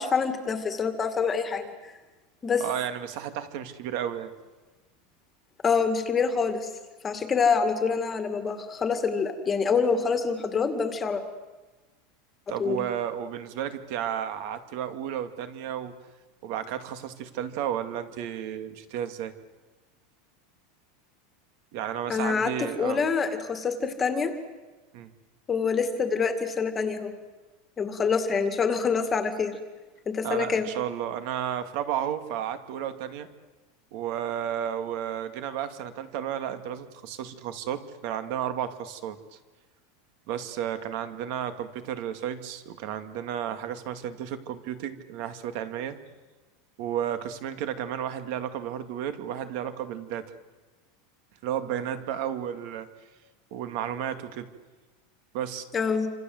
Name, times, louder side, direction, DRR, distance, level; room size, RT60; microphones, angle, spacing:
voice 1, 0.0-1.9 2.4-2.6 5.6-6.7 7.0-11.2 12.6-12.8 22.1-24.3 25.5-27.1 27.8-29.5 30.1-30.7 55.7-56.1, left 5 dB, 15° left, 8 dB, 2.1 m, -26 dB
voice 2, 2.6-4.3 12.5-15.9 16.4-19.3 21.7-23.0 24.9-25.1 30.2-33.3 33.9-39.2 40.3-46.0 46.8-50.3 51.4-52.9 53.5-54.5 55.3-55.6, right 10 dB, 50° right, 9 dB, 2.3 m, -32 dB
27.5 x 27.0 x 7.9 m, 1.2 s
supercardioid pair, 175°, 0 cm